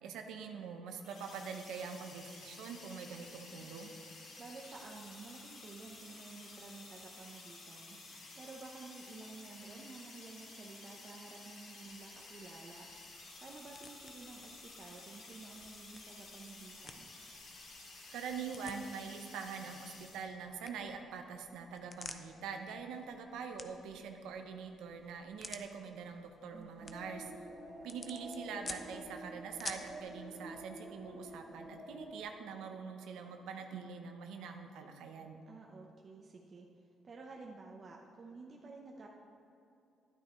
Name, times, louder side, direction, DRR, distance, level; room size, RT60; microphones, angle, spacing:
voice 1, 0.0-4.0 18.1-27.2 27.8-35.4, right 6 dB, 90° right, 5 dB, 0.7 m, -44 dB
sound 1, 1.0-20.2, left 3 dB, 75° left, 2.1 m, -53 dB
voice 2, 4.4-8.0 8.3-12.9 13.4-17.1 26.5-27.0 35.5-36.7 37.0-39.1, right 3 dB, 45° right, 0 dB, 0.8 m, -52 dB
sound 2, 11.8-30.0, left 3 dB, 35° left, 0.6 m, -53 dB
sound 3, 26.8-32.2, right 1 dB, 60° right, 1.7 m, -49 dB
11.0 x 9.5 x 3.1 m, 2.7 s
cardioid pair, 90°, 0 cm